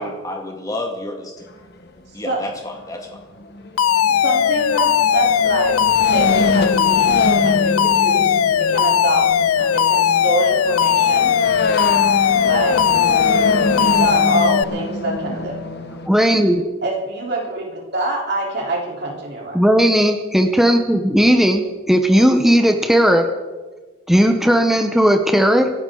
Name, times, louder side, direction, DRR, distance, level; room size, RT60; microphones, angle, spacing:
voice 1, 0.0-1.3 2.2-3.2, left 1 dB, 15° left, 2 dB, 2.0 m, -30 dB
sound 1, 1.4-1.5 2.4-2.5 2.7-2.9 3.1-16.1, left 1 dB, 50° left, 1.3 m, -25 dB
Alarm, 3.8-14.6, left 9 dB, 85° left, 0.4 m, -17 dB
voice 2, 4.2-7.1 7.4-9.2 9.6-11.4 12.4-12.8 13.8-15.6 16.8-19.6, right 2 dB, 50° right, -2 dB, 3.9 m, -25 dB
voice 3, 16.1-16.6 19.5-23.3 24.1-25.7, equal, ahead, 5 dB, 0.9 m, -15 dB
26.5 x 11.5 x 3.9 m, 1.3 s
head